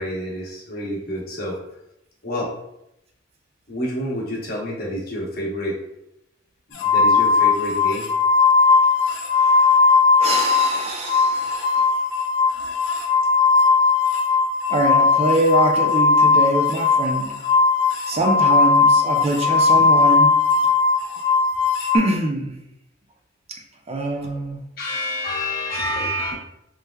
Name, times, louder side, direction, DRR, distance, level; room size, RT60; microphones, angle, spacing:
voice 1, 0.0-1.6 2.2-2.5 3.7-5.8 6.8-8.1 24.8-26.3, equal, 55° left, -3 dB, 0.9 m, -28 dB
sound 1, 6.8-10.8 11.0-22.0, left 4 dB, 70° left, 0.5 m, -18 dB
voice 2, 9.3-9.8 10.2-12.0 14.7-17.3 18.1-20.3 21.9-22.5 23.5-23.6 23.9-24.6, right 1 dB, 35° right, 3 dB, 0.4 m, -24 dB
3.2 x 3.2 x 2.2 m, 0.83 s
head